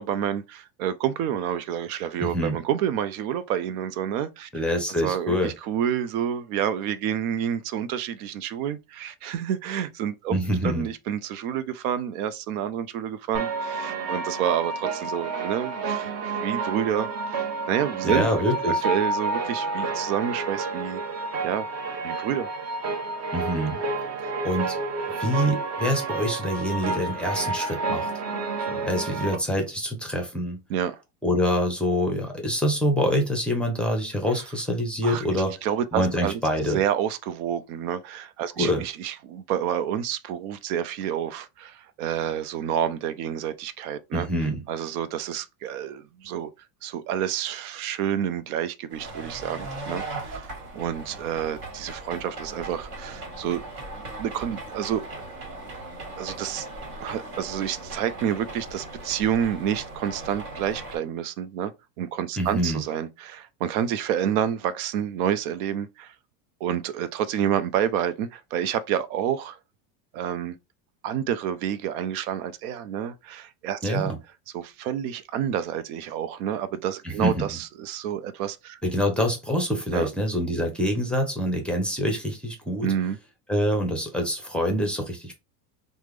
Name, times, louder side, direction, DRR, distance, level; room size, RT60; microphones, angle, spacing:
voice 1, 0.0-4.5 5.0-10.3 10.6-18.4 18.8-21.0 21.4-21.7 22.0-22.5 30.7-31.0 35.0-36.4 36.7-44.3 44.7-46.5 46.8-53.6 54.2-55.0 56.2-56.7 57.0-61.7 62.0-66.1 66.6-69.6 70.1-70.6 71.0-74.1 74.5-78.8 79.9-80.1 82.8-83.2, right 9 dB, 75° right, 0.5 m, -29 dB
voice 2, 2.2-2.6 4.5-5.5 10.3-10.9 18.0-18.8 23.3-23.8 24.4-24.8 25.2-28.1 28.7-30.6 31.2-35.5 35.9-36.8 38.6-38.8 44.1-44.6 62.4-62.8 73.8-74.2 77.0-77.6 78.8-82.9 83.5-85.3, equal, ahead, 0.6 m, -25 dB
sound 1, 13.3-29.4, right 3 dB, 35° right, 0.7 m, -30 dB
sound 2, 48.9-61.0, right 2 dB, 50° right, 1.6 m, -38 dB
3.4 x 2.1 x 3.1 m
supercardioid pair, 125°, 45 cm